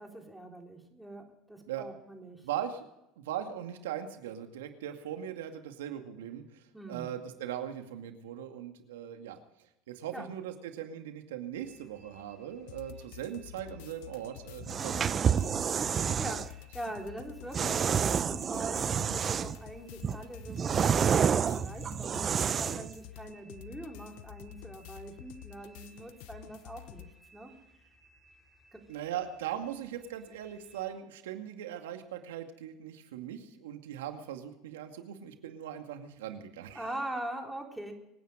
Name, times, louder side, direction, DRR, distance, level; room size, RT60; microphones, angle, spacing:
voice 1, 0.0-2.5 6.7-7.2 10.1-10.3 14.8-14.9 15.6-27.1 27.3-27.5 28.7-28.8 36.7-37.9, right 1 dB, ahead, 1 dB, 4.0 m, -43 dB
voice 2, 2.4-2.9 3.2-6.4 6.9-9.4 9.9-15.2 15.6-16.2 28.9-36.8, right 10 dB, 90° right, 6 dB, 2.2 m, -39 dB
sound 1, 11.5-30.9, right 1 dB, 15° left, 4.9 m, -62 dB
sound 2, 12.7-27.1, left 14 dB, 75° left, 0.7 m, -50 dB
sound 3, 14.6-16.5 17.5-19.6 20.0-22.9, right 7 dB, 35° right, 0.7 m, -29 dB
25.0 x 9.7 x 5.1 m, 0.87 s
supercardioid pair, 95°, 0 cm